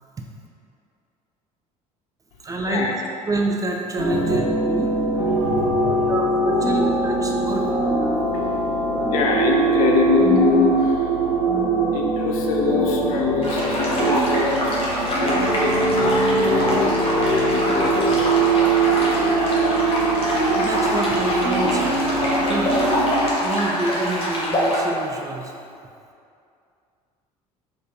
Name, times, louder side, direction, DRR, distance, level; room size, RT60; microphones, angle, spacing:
voice 1, 2.4-2.9 3.3-5.2 5.6-7.7 20.4-22.8 23.4-25.5, right 2 dB, 15° right, 0 dB, 0.4 m, -27 dB
sound 1, 4.0-23.3, right 3 dB, 90° right, 0.8 m, -22 dB
voice 2, 5.3-5.9 8.0-11.1 11.9-18.4, left 5 dB, 65° left, 1 dB, 0.5 m, -24 dB
sound 2, 13.4-24.8, equal, 30° left, 1.0 m, -25 dB
4.2 x 3.2 x 2.6 m, 2.5 s
figure-of-eight pair, 60°, 20 cm